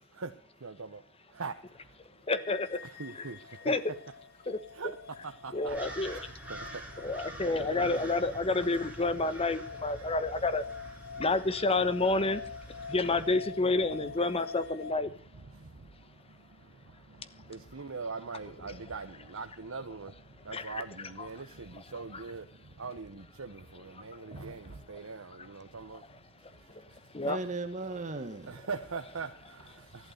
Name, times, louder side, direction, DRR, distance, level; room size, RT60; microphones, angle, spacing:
voice 1, 0.6-1.0 1.3-1.9 2.8-3.7 4.7-5.0 5.2-5.8 6.1-8.1 10.0-10.1 11.1-11.2 12.8-12.9 15.5-27.1 28.5-30.1, right 4 dB, 80° right, 1.0 m, -42 dB
voice 2, 2.0-2.8 3.1-3.2 3.6-3.8 4.5-4.9 5.5-6.2 7.0-10.7 11.2-15.4 16.2-16.3 17.3-17.5 18.7-18.8 20.5-21.4 21.7-22.2 23.9-24.5 25.4-25.8 26.3-27.4 29.8-30.1, left 3 dB, 30° left, 1.2 m, -31 dB
sound 1, 2.3-14.9, left 6 dB, 50° left, 1.1 m, -46 dB
sound 2, 5.7-13.3, right 1 dB, 5° right, 3.4 m, -46 dB
voice 3, 23.6-24.5 27.2-28.6, right 3 dB, 35° right, 1.2 m, -39 dB
14.5 x 12.0 x 6.6 m
head